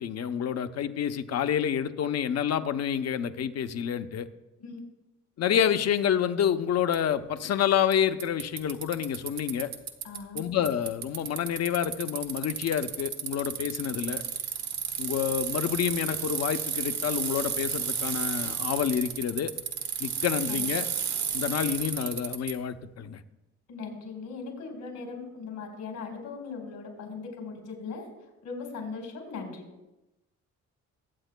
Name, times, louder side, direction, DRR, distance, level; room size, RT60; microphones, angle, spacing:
voice 1, 0.0-4.3 5.4-9.7 10.3-14.2 15.0-19.5 20.0-20.9 21.3-23.2, left 9 dB, 60° left, 9 dB, 0.7 m, -28 dB
Bicycle, 6.9-7.0 7.9-8.0 8.2-10.4 10.6-22.5, right 7 dB, 65° right, 1.1 m, -32 dB
voice 2, 10.0-10.4 20.5-20.6 23.7-28.1 28.4-29.6, left 4 dB, 85° left, 1 dB, 4.1 m, -39 dB
21.5 x 8.1 x 2.2 m, 0.99 s
cardioid pair, 90°, 30 cm